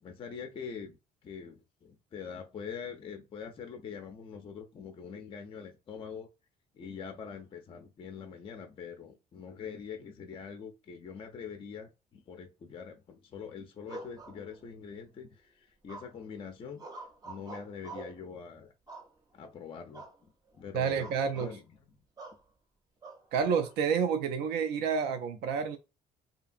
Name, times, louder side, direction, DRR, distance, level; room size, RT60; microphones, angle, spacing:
voice 1, 0.0-1.0 1.2-6.3 6.7-16.8 17.2-18.7 19.3-21.6, left 6 dB, 30° left, 0.4 m, -44 dB
sound 1, 13.9-14.9 15.9-16.3 16.8-18.2 18.9-19.5 19.9-20.2 20.5-20.6 21.0-21.6 22.2-22.4 23.0-23.7, right 3 dB, 20° right, 0.6 m, -46 dB
voice 2, 20.7-21.5 23.3-25.8, right 6 dB, 75° right, 0.4 m, -29 dB
2.7 x 2.5 x 2.5 m
cardioid pair, 110°, 17 cm